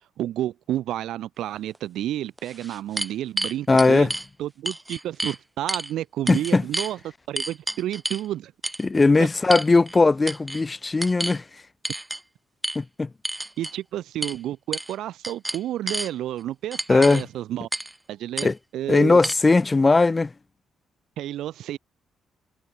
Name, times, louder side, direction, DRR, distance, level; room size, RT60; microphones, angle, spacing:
voice 1, 0.2-4.1 4.4-7.0 7.3-8.5 13.6-17.7 18.1-19.2 21.2-21.8, right 13 dB, 80° right, 1.7 m, -30 dB
sound 1, 1.7-1.8 2.4-4.3 4.7-5.4 5.7-5.9 6.3-6.9 7.4-8.3 8.6-8.8 9.5-10.0 10.3-10.6 11.0-11.4 11.8-12.2 12.6-12.8 13.2-13.8 14.2-14.4 14.7-15.0 15.2-16.1 16.7-17.2 17.7-17.9 18.4-18.5 19.2-19.3, right 1 dB, 10° right, 2.2 m, -30 dB
voice 2, 3.7-4.1 6.3-6.6 8.8-11.4 12.8-13.1 16.9-17.2 18.4-18.6 18.9-20.3, left 3 dB, 25° left, 2.0 m, -19 dB
cardioid pair, 90°, 0 cm